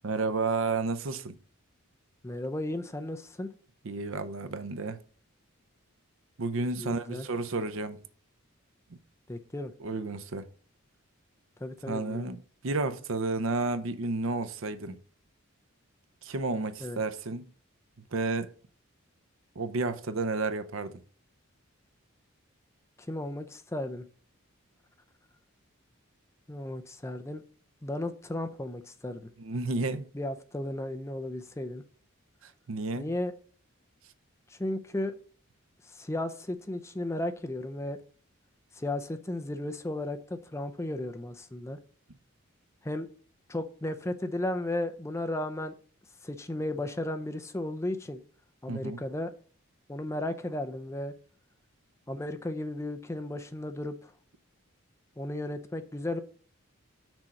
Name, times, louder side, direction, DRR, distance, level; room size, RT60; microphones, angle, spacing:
voice 1, 0.0-1.4 3.8-5.0 6.4-8.0 8.9-9.0 9.8-10.5 11.9-15.0 16.2-17.5 18.1-18.5 19.6-21.0 29.4-30.1 32.4-33.1 48.7-49.0, right 3 dB, 70° right, 0.6 m, -31 dB
voice 2, 2.2-3.5 6.8-7.2 9.3-9.7 11.6-12.3 16.8-17.0 23.1-24.1 26.5-27.4 27.8-29.3 30.1-31.8 33.0-33.3 34.5-35.1 35.9-38.0 38.7-41.8 42.8-43.1 43.5-45.7 46.2-48.2 48.6-49.3 49.9-51.1 52.1-54.1 55.2-56.2, left 1 dB, 15° left, 0.5 m, -34 dB
6.2 x 4.3 x 6.4 m
head